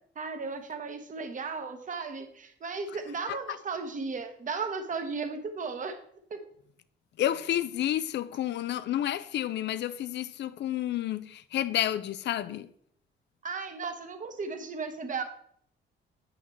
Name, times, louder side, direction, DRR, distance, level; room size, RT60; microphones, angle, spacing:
voice 1, 0.2-6.0 6.3-6.4 13.4-15.2, right 4 dB, 40° right, 1.1 m, -35 dB
voice 2, 7.2-12.7, left 12 dB, 60° left, 0.5 m, -30 dB
8.8 x 5.8 x 3.1 m
cardioid pair, 90°, 20 cm